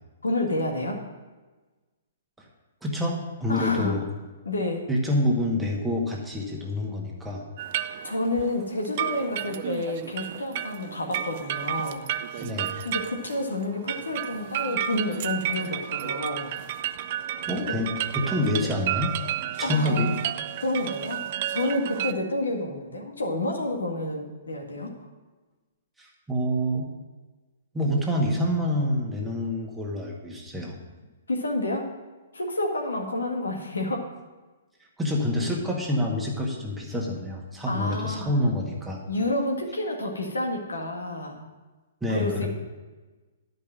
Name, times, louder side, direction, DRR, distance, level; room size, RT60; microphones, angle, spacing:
voice 1, 0.2-1.0 3.5-3.9 4.4-4.9 8.0-12.0 12.8-16.5 17.7-17.8 18.6-18.7 19.6-20.1 20.6-24.9 31.3-31.9 32.3-34.0 37.7-38.3 39.1-41.5 42.1-42.5, left 2 dB, 80° left, 1 dB, 1.8 m, -29 dB
voice 2, 2.8-4.0 4.9-7.5 12.4-12.7 17.5-19.2 19.6-20.2 26.0-26.9 27.7-30.8 35.0-39.0 42.0-42.5, left 1 dB, 5° right, -2 dB, 1.8 m, -27 dB
sound 1, 7.6-22.1, right 11 dB, 45° right, 0.4 m, -32 dB
10.5 x 5.4 x 7.6 m, 1.2 s
figure-of-eight pair, 120°, 0 cm